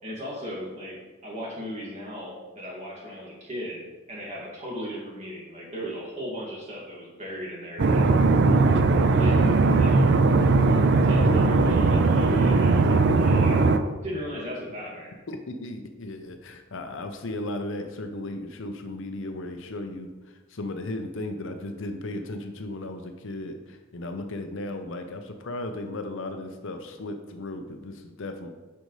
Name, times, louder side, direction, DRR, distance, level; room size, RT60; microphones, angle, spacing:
voice 1, 0.0-3.8 4.1-8.0 9.2-10.1 11.0-13.7 14.0-15.2, equal, 30° right, -5 dB, 2.3 m, -36 dB
sound 1, 7.8-13.8, right 3 dB, 50° right, 0.5 m, -19 dB
voice 2, 15.3-20.1 20.5-28.5, left 2 dB, 60° left, 6 dB, 0.6 m, -35 dB
10.0 x 5.3 x 3.2 m, 1.3 s
head